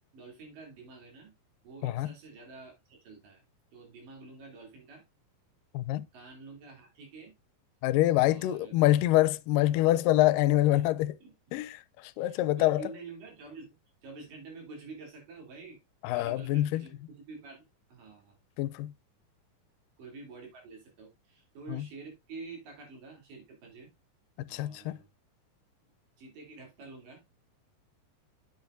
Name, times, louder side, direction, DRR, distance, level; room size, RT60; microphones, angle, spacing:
voice 1, 0.1-1.3 1.6-3.4 3.7-5.0 6.1-7.3 8.2-8.8 10.7-11.0 11.2-11.3 12.2-15.8 16.1-18.4 20.0-23.9 24.5-25.1 26.2-27.2, right 4 dB, 80° right, 4.7 m, -48 dB
voice 2, 1.8-2.1 5.7-6.1 7.8-11.2 11.5-11.7 12.0-12.8 16.0-16.8 18.6-18.9 21.7-21.8 24.4-25.0, left 15 dB, 85° left, 2.2 m, -25 dB
8.6 x 8.0 x 2.6 m
omnidirectional pair, 3.8 m